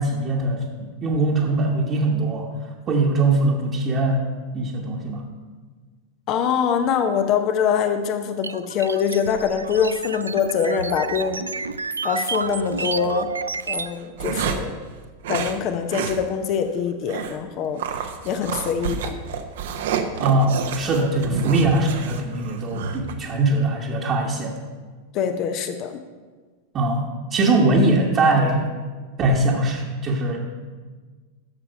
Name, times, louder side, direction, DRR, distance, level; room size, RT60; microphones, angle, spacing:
voice 1, 0.0-2.5 2.9-4.3 4.5-5.2 20.2-24.6 26.7-28.7 29.2-30.4, right 2 dB, 30° right, -3 dB, 1.3 m, -21 dB
voice 2, 6.3-11.5 12.0-13.3 13.7-14.7 15.3-17.8 18.2-19.2 25.1-26.0, left 7 dB, 40° left, 8 dB, 0.7 m, -24 dB
sound 1, 8.4-13.9, right 4 dB, 75° right, 0.4 m, -30 dB
sound 2, 12.6-12.9 13.6-14.8 15.2-15.6 15.9-16.2 16.5-16.6 17.1-17.4 17.8-23.1, right 7 dB, 55° right, 0.9 m, -29 dB
12.0 x 7.0 x 5.6 m, 1.4 s
figure-of-eight pair, 90°, 0 cm